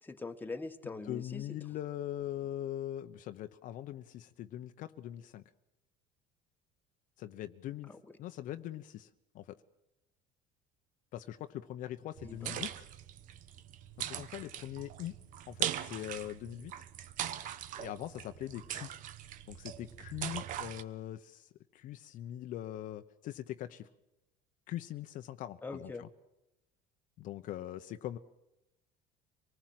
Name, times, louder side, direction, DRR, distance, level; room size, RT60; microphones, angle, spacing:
voice 1, 0.0-1.4 7.9-8.0 12.2-12.5 25.6-26.0, left 3 dB, 10° left, 6 dB, 1.4 m, -42 dB
voice 2, 1.1-5.4 7.2-7.9 8.2-9.1 9.3-9.6 11.1-12.7 14.0-15.2 15.5-16.8 17.8-18.9 19.5-23.9 24.7-26.1 27.2-28.2, left 12 dB, 55° left, 9 dB, 0.9 m, -42 dB
sound 1, 12.2-20.8, right 11 dB, 55° right, 1.1 m, -41 dB
25.0 x 19.0 x 7.7 m, 0.91 s
cardioid pair, 135°, 16 cm